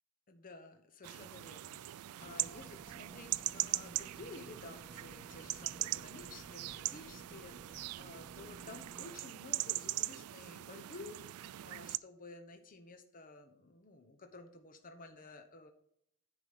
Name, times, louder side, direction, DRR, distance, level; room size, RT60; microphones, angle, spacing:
voice 1, 0.3-15.7, left 3 dB, 40° left, 7 dB, 0.9 m, -53 dB
sound 1, 1.0-12.0, right 16 dB, 80° right, 0.3 m, -41 dB
sound 2, 2.2-9.1, right 2 dB, 10° right, 0.4 m, -56 dB
9.7 x 5.0 x 5.6 m, 0.70 s
head